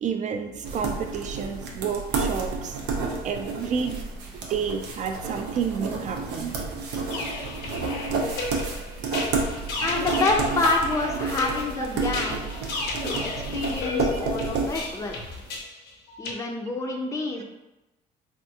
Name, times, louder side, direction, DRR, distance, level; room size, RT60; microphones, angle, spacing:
voice 1, 0.0-2.8 3.2-4.0 4.5-6.6 9.2-9.3 10.2-10.3 11.8-11.9 12.6-12.7, right 6 dB, 45° right, 5 dB, 0.4 m, -30 dB
sound 1, 0.6-15.5, right 4 dB, 90° right, 0.6 m, -31 dB
sound 2, 7.1-16.3, left 3 dB, 90° left, 0.7 m, -34 dB
voice 2, 9.8-12.5 13.0-15.4 16.2-17.4, left 3 dB, 20° left, 1 dB, 0.4 m, -28 dB
3.4 x 2.4 x 2.7 m, 0.96 s
cardioid pair, 110°, 17 cm